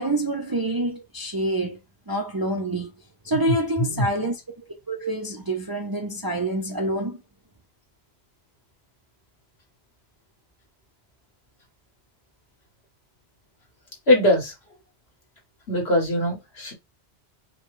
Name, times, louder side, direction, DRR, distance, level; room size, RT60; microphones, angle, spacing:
voice 1, 0.0-1.8 2.1-2.9 3.2-7.2, right 1 dB, 30° right, 0.5 m, -27 dB
voice 2, 14.1-14.5 15.7-16.7, left 1 dB, 65° left, 1.9 m, -21 dB
5.0 x 2.3 x 3.2 m
omnidirectional pair, 1.1 m